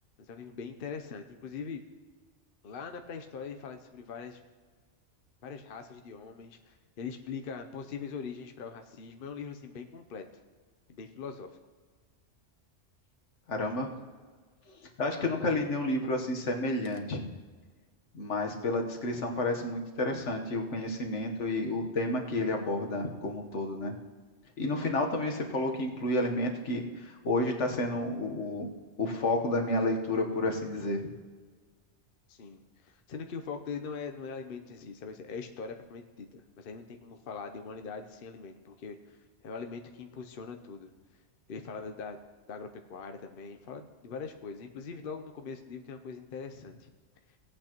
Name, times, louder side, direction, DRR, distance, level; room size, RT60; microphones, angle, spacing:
voice 1, 0.2-1.8 2.6-4.4 5.4-10.2 10.9-11.5 32.3-39.2 39.4-40.9 41.5-42.2 42.5-46.9, left 5 dB, 55° left, 6 dB, 0.9 m, -42 dB
voice 2, 13.5-13.9 14.7-17.2 18.1-23.9 24.6-28.7 29.0-31.0, left 2 dB, 75° left, 3 dB, 1.5 m, -30 dB
17.5 x 8.7 x 3.0 m, 1.5 s
omnidirectional pair, 1.2 m